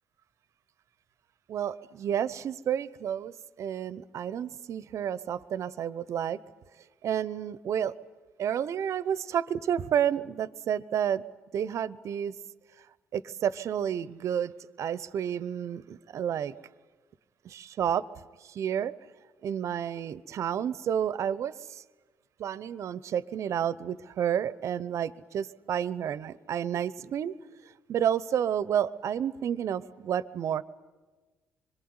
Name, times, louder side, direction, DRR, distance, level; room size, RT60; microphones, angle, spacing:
voice 1, 1.5-6.4 7.0-7.9 8.4-11.2 11.5-12.3 13.1-14.5 14.8-16.5 17.4-18.0 18.5-18.9 19.4-21.8 22.4-27.3 27.9-30.6, right 9 dB, 60° right, 18 dB, 0.8 m, -30 dB
25.5 x 22.0 x 9.7 m, 1.3 s
hypercardioid pair, 50°, 6 cm